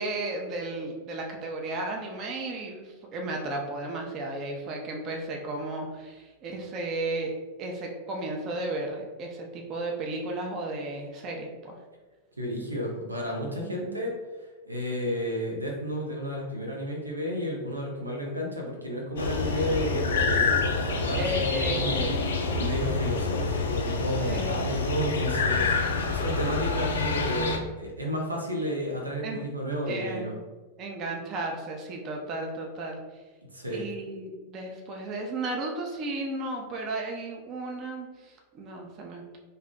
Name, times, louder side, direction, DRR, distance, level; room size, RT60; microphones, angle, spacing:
voice 1, 0.0-7.3 7.6-11.8 13.6-14.1 19.6-20.1 20.4-20.8 21.1-22.2 22.4-22.7 24.2-24.6 29.2-29.4 29.8-30.4 30.8-33.0 33.7-39.4, right 2 dB, 35° right, 1 dB, 0.5 m, -34 dB
voice 2, 12.4-14.1 14.6-30.4 33.5-33.8, equal, 80° right, 0 dB, 0.5 m, -32 dB
sound 1, 19.2-27.6, left 4 dB, 65° left, 0.3 m, -27 dB
2.6 x 2.2 x 3.5 m, 1.2 s
figure-of-eight pair, 90°, 0 cm